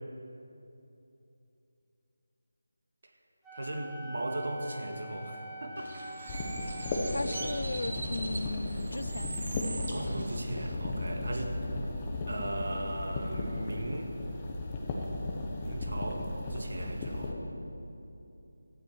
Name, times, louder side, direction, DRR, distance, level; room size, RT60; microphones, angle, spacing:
Wind instrument woodwind instrument, 3.4-7.7, right 1 dB, 5° right, 1.4 m, -44 dB
voice 1, 3.5-5.9 9.9-11.5 12.3-14.1 15.6-17.4, right 1 dB, 65° right, 3 dB, 1.9 m, -37 dB
Bird, 5.8-10.8, right 2 dB, 45° right, 1.7 m, -41 dB
sound 1, 6.3-17.3, left 2 dB, 15° left, 1.1 m, -35 dB
voice 2, 7.1-9.3, left 2 dB, 65° left, 17 dB, 0.4 m, -36 dB
17.0 x 13.0 x 4.6 m, 2.8 s
figure-of-eight pair, 175°, 0 cm